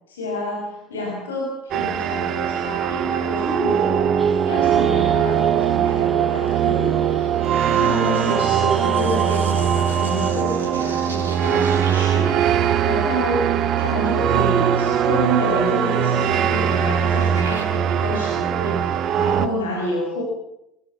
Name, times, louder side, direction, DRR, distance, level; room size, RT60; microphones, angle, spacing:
voice 1, 0.1-7.3 7.6-20.2, equal, 75° left, 0 dB, 5.5 m, -28 dB
sound 1, 1.7-19.5, right 9 dB, 45° right, 1.5 m, -21 dB
sound 2, 4.2-10.3, equal, ahead, 3.7 m, -41 dB
sound 3, 7.0-17.6, right 3 dB, 80° right, 5.9 m, -39 dB
23.5 x 18.5 x 7.1 m, 0.81 s
figure-of-eight pair, 65°, 0 cm